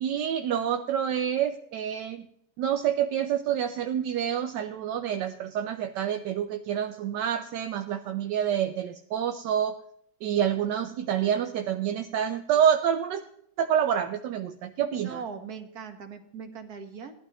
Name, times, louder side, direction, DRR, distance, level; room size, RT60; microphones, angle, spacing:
voice 1, 0.0-2.2 2.6-9.7 10.2-13.2 13.6-15.2, right 9 dB, 75° right, 7 dB, 1.3 m, -27 dB
voice 2, 15.0-17.1, right 6 dB, 55° right, 6 dB, 1.7 m, -40 dB
18.5 x 12.0 x 3.0 m, 0.71 s
omnidirectional pair, 2.0 m